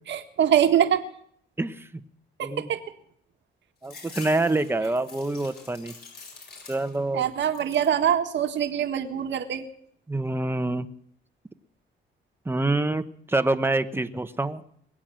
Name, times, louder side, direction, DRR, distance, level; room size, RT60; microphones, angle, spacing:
voice 1, 0.1-1.1 2.4-2.8 7.1-9.7, right 9 dB, 65° right, 6 dB, 1.7 m, -24 dB
sound 1, 3.8-7.1 7.4-8.0 8.5-9.2, left 4 dB, 55° left, 5.3 m, -46 dB
voice 2, 3.8-5.9 6.7-7.3 10.1-10.9 12.4-14.6, right 2 dB, 10° right, 10 dB, 1.1 m, -26 dB
21.5 x 8.5 x 7.6 m, 0.66 s
cardioid pair, 90°, 20 cm